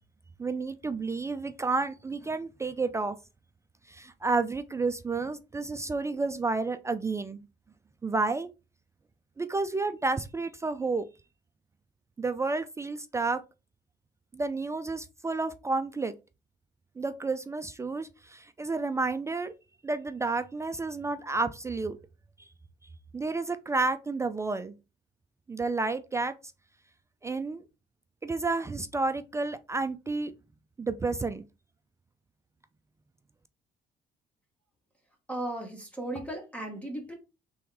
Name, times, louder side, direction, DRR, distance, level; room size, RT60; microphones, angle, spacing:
voice 1, 0.4-3.2 3.9-7.4 8.0-8.5 9.4-11.1 12.2-13.4 14.3-16.1 17.0-19.5 19.8-22.0 23.1-24.7 25.5-26.3 27.2-27.6 28.2-30.3 30.8-31.4, right 3 dB, 15° right, 0.3 m, -30 dB
voice 2, 35.3-37.1, right 1 dB, 10° left, 1.0 m, -36 dB
3.4 x 3.0 x 3.7 m
cardioid pair, 110°, 17 cm